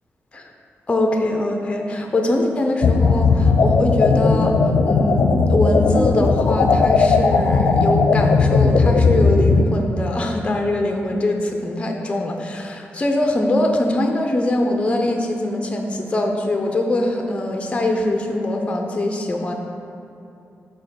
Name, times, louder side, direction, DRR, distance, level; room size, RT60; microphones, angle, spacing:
voice 1, 0.9-4.6 4.8-19.5, left 1 dB, 25° left, 2 dB, 0.7 m, -22 dB
sound 1, 2.8-9.6, left 4 dB, 65° left, 0.5 m, -16 dB
5.4 x 4.4 x 6.3 m, 2.8 s
cardioid pair, 90°, 5 cm